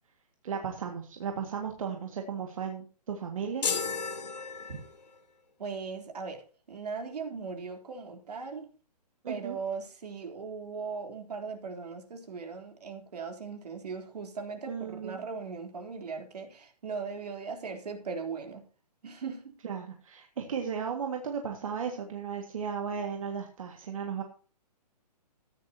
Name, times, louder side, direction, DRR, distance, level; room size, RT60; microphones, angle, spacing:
voice 1, 0.4-3.7 4.7-4.8 9.2-9.6 14.7-15.2 19.6-24.2, right 6 dB, 55° right, 1.9 m, -35 dB
sound 1, 3.6-5.2, left 5 dB, 80° left, 2.9 m, -33 dB
voice 2, 5.6-6.4 6.7-8.7 9.3-18.7 19.0-19.5, right 5 dB, 70° right, 3.4 m, -38 dB
14.5 x 10.5 x 2.8 m
hypercardioid pair, 170°, 21 cm